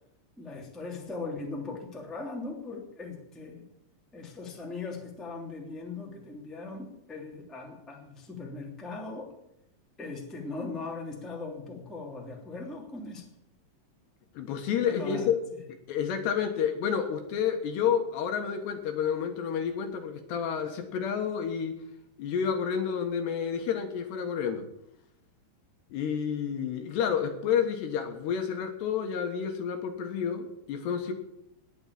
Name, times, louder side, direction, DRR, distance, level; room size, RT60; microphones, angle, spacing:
voice 1, 0.4-3.7 4.1-9.3 10.0-13.3 14.9-15.3, left 3 dB, ahead, -1 dB, 1.8 m, -39 dB
voice 2, 14.3-15.4 15.9-21.7 22.2-24.6 25.9-31.1, left 7 dB, 70° left, 5 dB, 3.3 m, -30 dB
19.5 x 7.1 x 8.7 m, 0.80 s
omnidirectional pair, 5.4 m